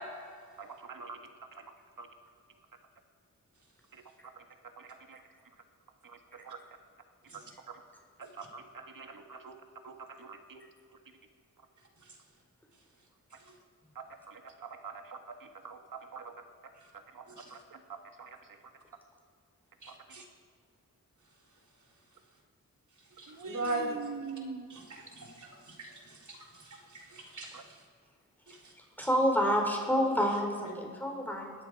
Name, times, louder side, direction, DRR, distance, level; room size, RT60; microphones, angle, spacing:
voice 1, 0.6-1.2 1.5-1.7 2.0-2.1 3.9-4.0 4.4-4.5 4.8-5.2 6.0-6.6 7.3-7.8 8.2-9.6 9.8-10.6 14.0-16.4 16.9-17.2 17.5-18.6 19.9-20.0 23.3-24.7 27.5-27.6, right 5 dB, 75° right, 5 dB, 1.8 m, -45 dB
voice 2, 19.8-20.2 23.2-24.0 24.9-25.5 25.8-25.9 26.3-26.4 26.9-27.6 28.5-28.6, right 2 dB, 60° right, -1 dB, 3.7 m, -38 dB
voice 3, 28.8-31.5, equal, 5° left, 1 dB, 4.1 m, -28 dB
21.0 x 13.5 x 4.8 m, 2.1 s
cardioid pair, 65°, 34 cm